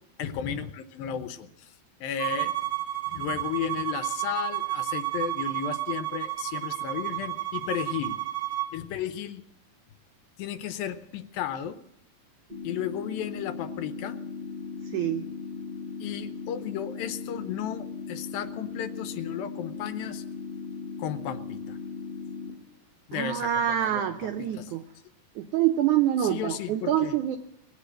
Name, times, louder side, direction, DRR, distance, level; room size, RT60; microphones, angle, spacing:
voice 1, 0.2-1.7 2.0-2.7 3.1-8.2 8.7-9.4 10.4-11.8 12.6-14.2 16.0-20.2 21.0-21.8 23.1-24.7 26.2-27.2, left 9 dB, 75° left, 11 dB, 2.4 m, -34 dB
Bowed string instrument, 2.2-8.7, right 15 dB, 65° right, 1.9 m, -31 dB
sound 1, 12.5-22.5, left 5 dB, 25° right, 0.8 m, -38 dB
voice 2, 14.8-15.3 23.1-24.8 25.4-27.4, right 11 dB, 80° right, 7 dB, 1.7 m, -26 dB
20.5 x 8.3 x 7.6 m, 0.82 s
omnidirectional pair, 4.4 m